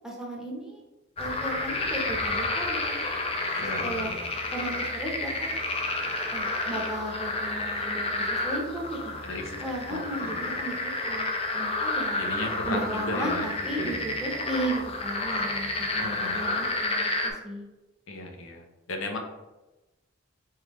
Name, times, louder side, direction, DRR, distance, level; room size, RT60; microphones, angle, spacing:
voice 1, 0.0-0.8 1.2-3.0 3.8-4.2 4.5-5.5 6.3-9.1 9.6-12.2 12.6-17.7, right 1 dB, 5° right, -2 dB, 0.8 m, -35 dB
sound 1, 1.2-17.3, left 2 dB, 30° left, 0.5 m, -30 dB
voice 2, 3.5-4.3 9.2-9.5 9.9-10.6 12.2-14.0 16.0-16.5 18.1-19.2, left 2 dB, 80° left, 3 dB, 0.8 m, -36 dB
4.4 x 3.6 x 3.0 m, 1.1 s
head